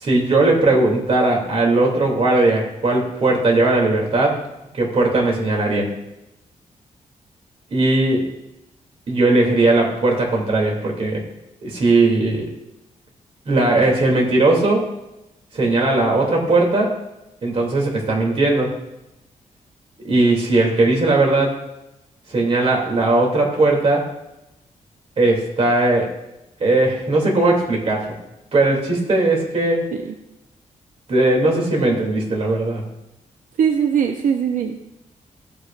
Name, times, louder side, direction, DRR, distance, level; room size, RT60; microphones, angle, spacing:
voice 1, 0.0-4.4 4.7-5.9 7.7-8.2 9.1-11.2 11.6-12.4 13.5-14.9 15.5-16.9 17.4-18.8 20.0-21.6 22.3-24.1 25.2-26.1 26.6-28.1 28.5-29.9 31.1-32.8, right 2 dB, 45° right, 0 dB, 2.7 m, -18 dB
voice 2, 33.6-34.9, right 7 dB, 85° right, 5 dB, 0.7 m, -21 dB
15.0 x 8.8 x 2.5 m, 0.92 s
wide cardioid pair, 155°, 13 cm